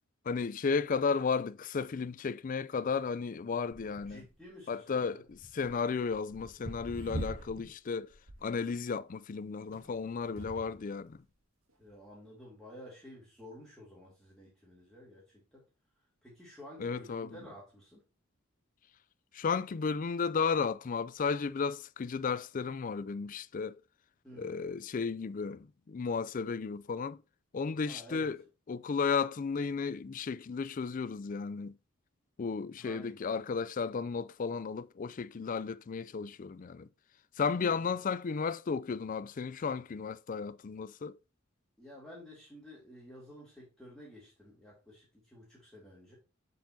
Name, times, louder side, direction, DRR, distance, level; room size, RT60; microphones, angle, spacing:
voice 1, 0.2-4.2 4.7-8.1 8.4-11.2 16.8-17.3 19.3-23.8 24.4-27.2 27.5-28.4 28.7-31.7 32.4-36.9 37.4-41.2, left 5 dB, 40° left, 0.4 m, -34 dB
sound 1, 3.7-4.5 5.3-7.7 8.1-8.6 9.7-10.9 11.7-11.8, right 1 dB, 90° right, 1.7 m, -44 dB
voice 2, 4.1-5.2 11.8-15.6 16.2-18.0 24.2-24.6 27.8-28.3 32.8-33.3 41.8-46.1, equal, ahead, 2.4 m, -52 dB
7.6 x 5.4 x 2.7 m
head